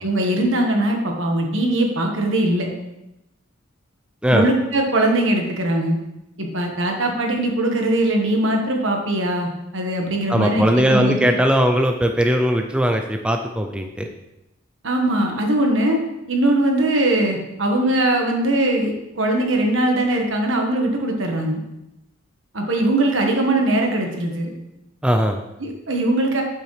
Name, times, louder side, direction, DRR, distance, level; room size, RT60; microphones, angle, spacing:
voice 1, 0.0-2.7 4.3-6.0 6.4-11.3 14.8-16.0 16.3-21.6 22.5-24.5 25.6-26.4, right 1 dB, 70° right, 2 dB, 1.4 m, -21 dB
voice 2, 10.3-14.1 25.0-25.4, equal, 5° right, 4 dB, 0.4 m, -19 dB
7.8 x 7.0 x 3.3 m, 0.91 s
head